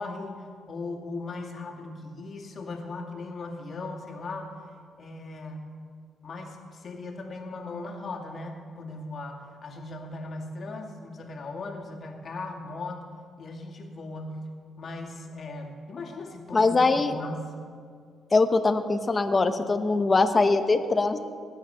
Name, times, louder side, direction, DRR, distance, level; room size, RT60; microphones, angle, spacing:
voice 1, 0.0-4.5 5.0-5.6 6.2-13.0 13.4-14.4 14.8-17.5, left 2 dB, 50° left, 1 dB, 2.3 m, -38 dB
voice 2, 16.5-17.1 18.3-21.2, left 3 dB, 30° left, 8 dB, 0.9 m, -22 dB
19.5 x 9.3 x 5.7 m, 2.1 s
cardioid pair, 90°, 0 cm